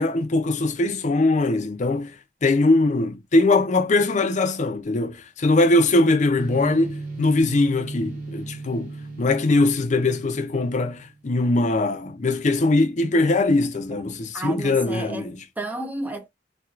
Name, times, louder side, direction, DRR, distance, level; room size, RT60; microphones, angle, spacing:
voice 1, 0.0-2.1 2.4-8.9 9.2-15.4, left 2 dB, 40° left, 0.5 m, -21 dB
sound 1, 6.4-11.2, right 3 dB, 45° right, 1.6 m, -36 dB
voice 2, 14.3-16.3, right 2 dB, 10° right, 0.5 m, -32 dB
4.4 x 2.3 x 2.4 m
head